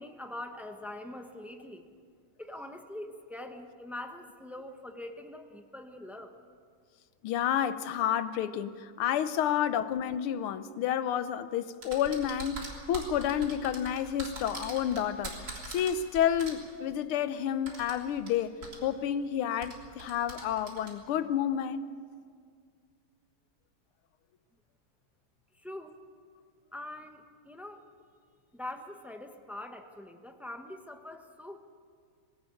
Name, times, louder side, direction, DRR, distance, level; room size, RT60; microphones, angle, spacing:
voice 1, 0.0-1.9 2.4-6.4 25.5-26.0 26.7-27.8 28.5-31.6, left 1 dB, ahead, 0.6 m, -43 dB
voice 2, 7.2-15.4 15.7-18.5 18.8-21.8, left 9 dB, 90° left, 1.7 m, -30 dB
sound 1, 11.8-16.5 17.6-18.3 18.6-18.8 19.6-20.9, right 2 dB, 45° right, 3.8 m, -42 dB
20.5 x 17.5 x 8.5 m
omnidirectional pair, 2.3 m